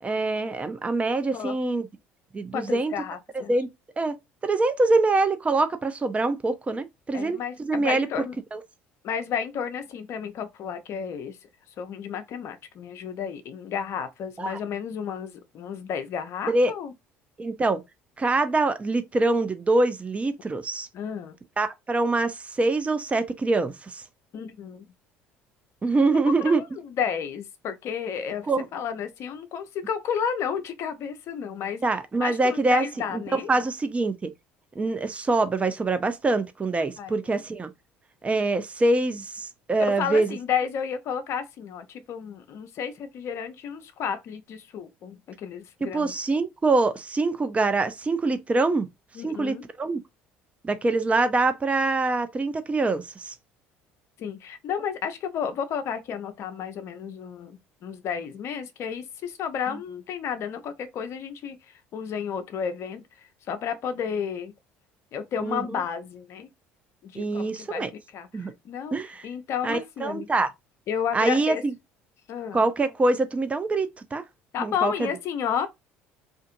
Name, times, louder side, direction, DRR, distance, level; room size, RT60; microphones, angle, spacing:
voice 1, 0.0-1.9 2.3-2.9 3.3-3.7 4.0-4.2 4.4-8.1 8.5-8.6 14.4-14.6 16.5-16.7 17.4-17.8 18.2-20.9 21.6-24.0 25.8-26.6 28.5-28.6 31.8-32.9 33.1-34.3 34.8-37.7 38.2-40.4 45.8-48.9 49.2-50.0 50.6-53.3 59.7-59.8 65.4-65.8 67.2-67.9 68.3-68.5 68.9-69.3 69.6-70.5 71.1-71.7 72.5-74.2 74.6-75.1, right 3 dB, 25° right, 0.5 m, -24 dB
voice 2, 2.5-3.5 7.1-8.4 9.0-11.4 11.8-16.9 20.9-21.4 24.3-24.9 26.4-28.5 28.7-31.8 32.2-33.5 37.0-37.2 39.8-46.1 49.1-49.7 54.2-64.5 65.1-66.5 67.0-69.0 69.2-70.3 70.9-71.6 72.3-72.6 74.5-75.7, left 7 dB, 55° left, 0.5 m, -32 dB
2.5 x 2.5 x 2.5 m
hypercardioid pair, 65°, 6 cm